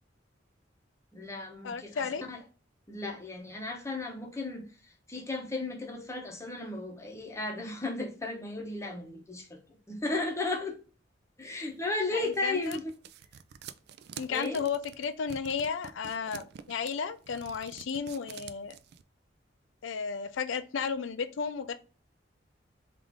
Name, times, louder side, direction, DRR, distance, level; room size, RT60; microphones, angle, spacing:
voice 1, 1.1-2.4 2.9-9.6 9.9-10.8 11.4-12.9 14.3-14.6, left 2 dB, 15° left, 0.8 m, -35 dB
voice 2, 1.6-2.2 12.1-12.8 14.2-18.8 19.8-21.7, left 6 dB, 85° left, 0.4 m, -33 dB
sound 1, 11.8-19.0, right 8 dB, 60° right, 0.3 m, -47 dB
3.6 x 2.5 x 3.4 m
head